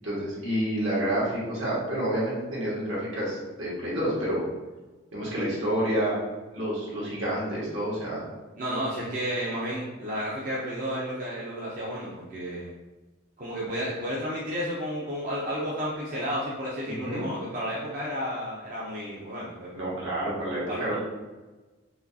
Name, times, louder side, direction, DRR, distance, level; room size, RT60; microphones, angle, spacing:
voice 1, 0.0-4.4 5.1-6.2 6.5-8.3 16.9-17.2 19.7-21.0, right 1 dB, 75° right, -6 dB, 1.5 m, -29 dB
voice 2, 8.5-12.7 13.4-19.7 20.7-20.9, equal, 40° right, -6 dB, 0.6 m, -32 dB
4.9 x 2.3 x 2.6 m, 1.2 s
head